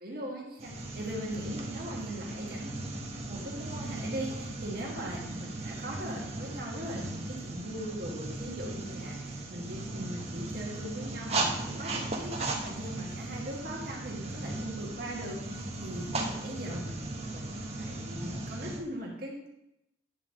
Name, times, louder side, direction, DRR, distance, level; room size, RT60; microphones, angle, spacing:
voice 1, 0.0-19.5, right 1 dB, 50° right, -2 dB, 1.4 m, -40 dB
sound 1, 0.6-18.8, right 2 dB, 35° right, 0.9 m, -37 dB
9.3 x 4.0 x 6.0 m, 0.85 s
head